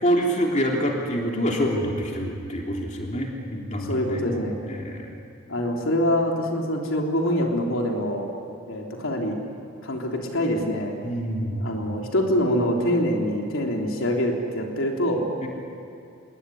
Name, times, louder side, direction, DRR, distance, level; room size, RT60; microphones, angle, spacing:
voice 1, 0.0-5.1 11.0-11.7 15.4-15.5, equal, 35° left, -1 dB, 3.4 m, -26 dB
voice 2, 3.9-4.6 5.5-8.3 8.7-9.4 9.8-11.0 11.6-15.2, equal, 75° left, 0 dB, 3.5 m, -25 dB
27.5 x 22.0 x 10.0 m, 2.6 s
head